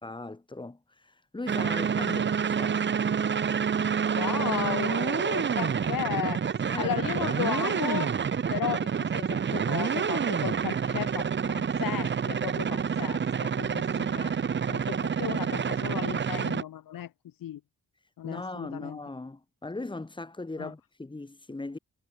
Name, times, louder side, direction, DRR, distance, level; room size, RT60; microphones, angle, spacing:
voice 1, 0.0-2.8 6.7-7.0 14.7-14.8 15.2-15.4 18.2-21.8, left 2 dB, 15° left, 1.5 m, -39 dB
sound 1, 1.5-16.6, right 7 dB, 35° right, 0.6 m, -28 dB
voice 2, 4.1-8.1 8.5-11.3 11.5-14.3 14.7-17.1 17.4-17.6 18.2-19.0 20.6-20.7, left 11 dB, 80° left, 0.8 m, -35 dB
wide cardioid pair, 165°, 34 cm